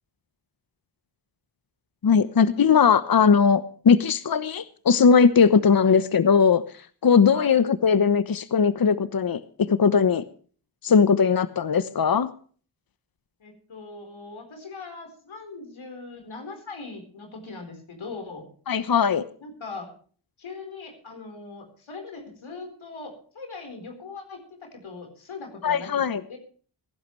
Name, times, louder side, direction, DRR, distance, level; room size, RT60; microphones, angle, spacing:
voice 1, 2.0-6.6 7.0-9.4 9.7-10.2 10.8-12.3 18.7-19.2 25.6-26.2, left 6 dB, 50° left, 14 dB, 1.0 m, -19 dB
voice 2, 13.4-18.5 19.4-19.9 20.4-26.0 26.3-26.4, left 4 dB, 80° left, 3 dB, 4.3 m, -40 dB
21.5 x 11.5 x 3.2 m, 0.43 s
cardioid pair, 50°, 47 cm